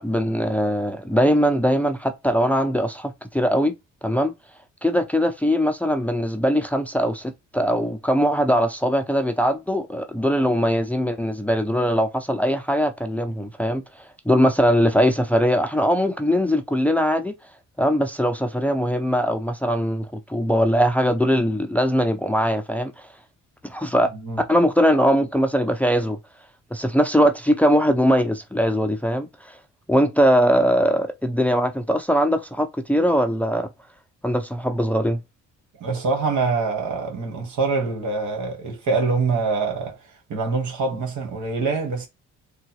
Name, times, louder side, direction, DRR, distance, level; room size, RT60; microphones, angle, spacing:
voice 1, 0.0-3.7 4.0-4.3 4.8-17.3 17.8-23.1 23.6-24.1 24.5-26.2 26.7-29.6 29.9-33.7 34.2-35.2, equal, 5° left, 0.6 m, -21 dB
voice 2, 35.8-40.0 40.3-42.1, right 4 dB, 70° right, 1.9 m, -24 dB
3.8 x 2.4 x 4.5 m
cardioid pair, 90°, 30 cm